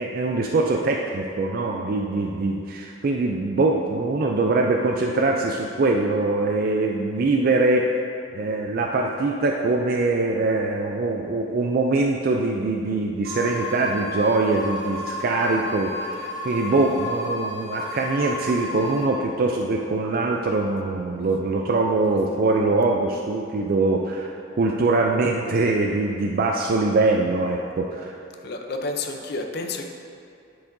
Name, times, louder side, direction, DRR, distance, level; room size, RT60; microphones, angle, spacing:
voice 1, 0.0-7.9 8.3-28.2, right 3 dB, 50° right, 1 dB, 0.4 m, -23 dB
sound 1, 13.2-19.0, left 1 dB, 75° right, 1.4 m, -32 dB
voice 2, 28.4-29.8, left 3 dB, 55° left, 4 dB, 0.6 m, -30 dB
10.5 x 4.8 x 2.6 m, 2.5 s
head